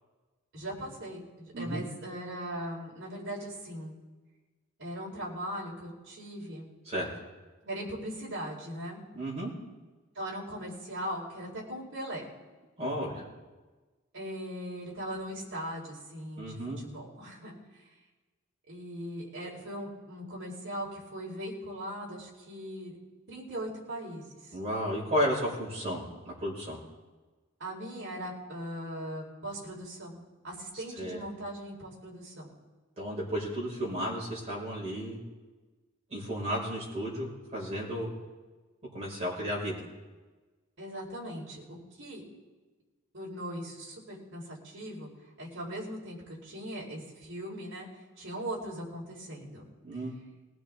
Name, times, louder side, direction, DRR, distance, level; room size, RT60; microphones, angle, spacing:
voice 1, 0.5-4.0 4.8-6.7 7.6-9.0 10.1-12.3 14.1-17.6 18.7-23.0 23.3-24.2 27.6-32.5 40.8-42.2 43.1-45.1 45.4-46.2 46.4-47.9 48.2-49.6, equal, 60° right, -3 dB, 4.2 m, -39 dB
voice 2, 1.5-1.8 6.9-7.1 9.1-9.5 12.8-13.3 16.4-16.8 24.5-26.1 26.4-26.8 30.7-31.2 33.0-35.2 36.1-38.1 38.9-39.7 49.8-50.1, equal, 30° right, -5 dB, 5.4 m, -33 dB
21.0 x 15.5 x 3.7 m, 1.3 s
head